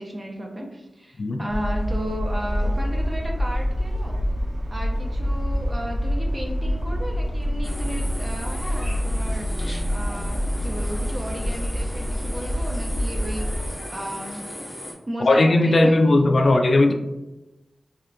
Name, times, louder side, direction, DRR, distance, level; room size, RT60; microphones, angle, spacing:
voice 1, 0.0-4.2 4.7-9.5 9.9-14.4 15.1-16.7, equal, 30° right, 0 dB, 0.7 m, -34 dB
sound 1, 1.5-13.7, equal, 85° right, 0.9 m, -26 dB
sound 2, 7.6-14.9, left 1 dB, 20° left, 1.0 m, -36 dB
voice 2, 15.3-16.9, left 2 dB, 65° left, 5 dB, 0.4 m, -17 dB
3.5 x 3.3 x 2.5 m, 0.98 s
wide cardioid pair, 110°, 0 cm